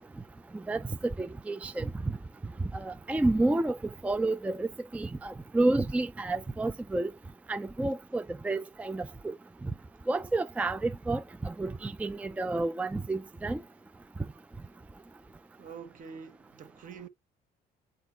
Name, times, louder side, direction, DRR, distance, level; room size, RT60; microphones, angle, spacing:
voice 1, 0.5-1.9 2.7-3.8 4.0-7.1 7.5-9.3 10.1-13.6, right 2 dB, 10° right, 0.4 m, -30 dB
voice 2, 15.6-17.1, right 6 dB, 50° right, 0.9 m, -46 dB
8.0 x 3.9 x 4.3 m
cardioid pair, 110°, 17 cm